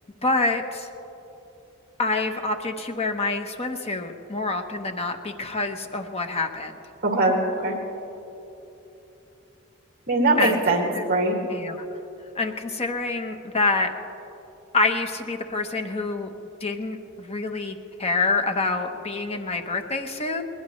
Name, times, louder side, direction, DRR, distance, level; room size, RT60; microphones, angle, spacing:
voice 1, 0.2-0.9 2.0-6.7 10.4-10.6 10.9-11.0 11.5-11.8 12.4-13.9 14.7-16.3 16.6-20.4, left 3 dB, 30° left, 5 dB, 1.0 m, -26 dB
voice 2, 7.0-7.8 10.1-11.4, right 2 dB, 45° right, -1 dB, 2.2 m, -22 dB
21.0 x 20.0 x 3.2 m, 3.0 s
head